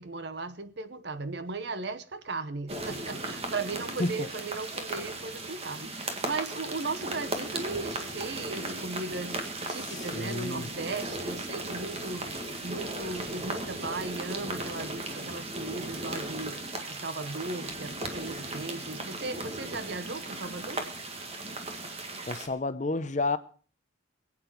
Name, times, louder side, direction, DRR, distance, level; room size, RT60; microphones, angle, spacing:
voice 1, 0.0-12.4 12.6-20.8, right 3 dB, 55° right, 1.0 m, -37 dB
sound 1, 2.7-22.5, right 2 dB, 30° right, 1.8 m, -36 dB
voice 2, 9.8-10.7 22.3-23.4, left 2 dB, 40° left, 0.7 m, -30 dB
22.5 x 8.8 x 4.7 m
head